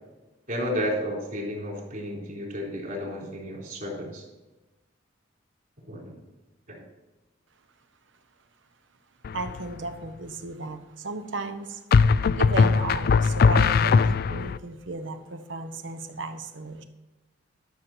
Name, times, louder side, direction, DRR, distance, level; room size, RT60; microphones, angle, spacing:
voice 1, 0.5-4.3 5.9-6.2 6.7-6.8, equal, 50° right, -1 dB, 3.6 m, -32 dB
sound 1, 9.2-9.7 11.9-14.6, left 5 dB, 50° left, 0.3 m, -20 dB
voice 2, 9.3-11.8 12.3-16.8, right 2 dB, 70° right, 8 dB, 1.0 m, -34 dB
12.0 x 6.7 x 4.4 m, 1.1 s
head